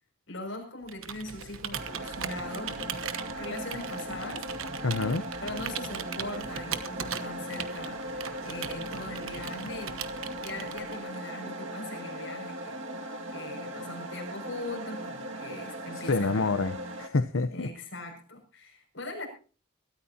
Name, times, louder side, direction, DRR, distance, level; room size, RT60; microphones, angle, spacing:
voice 1, 0.3-4.5 5.4-8.0 8.4-10.1 10.4-13.0 13.3-16.5 17.5-19.3, left 2 dB, 65° left, 3 dB, 6.4 m, -40 dB
Computer keyboard, 0.9-11.2, right 7 dB, 85° right, 1.1 m, -39 dB
sound 1, 1.7-17.1, right 1 dB, 70° right, 2.1 m, -38 dB
voice 2, 4.8-5.2 16.1-17.7, left 3 dB, 85° left, 11 dB, 0.8 m, -27 dB
22.5 x 13.5 x 2.9 m, 0.37 s
head